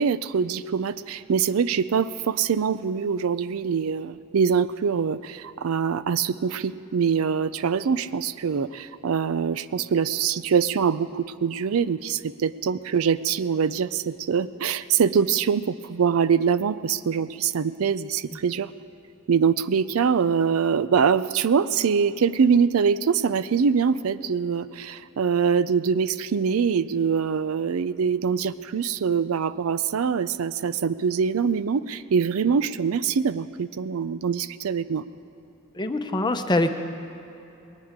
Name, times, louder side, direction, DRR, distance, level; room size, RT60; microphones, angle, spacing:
voice 1, 0.0-18.7 19.3-35.0, right 6 dB, 80° right, 15 dB, 0.4 m, -24 dB
voice 2, 35.8-36.7, left 2 dB, 20° left, 7 dB, 0.8 m, -23 dB
20.5 x 19.0 x 3.7 m, 2.9 s
head